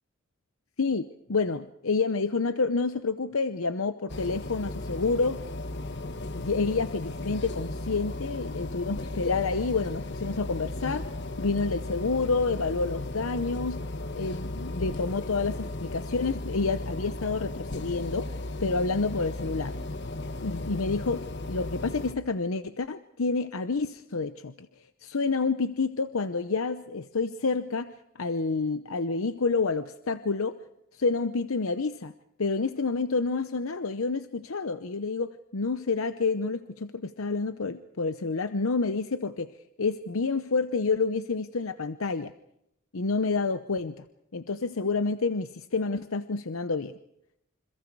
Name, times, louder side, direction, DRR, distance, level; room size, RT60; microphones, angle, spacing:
voice 1, 0.8-5.4 6.3-11.1 11.4-13.9 14.1-18.3 18.6-19.8 20.4-30.6 30.9-32.1 32.4-39.5 39.8-42.3 42.9-44.0 44.3-47.0, left 4 dB, 80° left, 11 dB, 0.8 m, -29 dB
sound 1, 4.1-22.1, left 2 dB, 55° left, 1.2 m, -35 dB
28.0 x 26.0 x 4.7 m, 0.79 s
head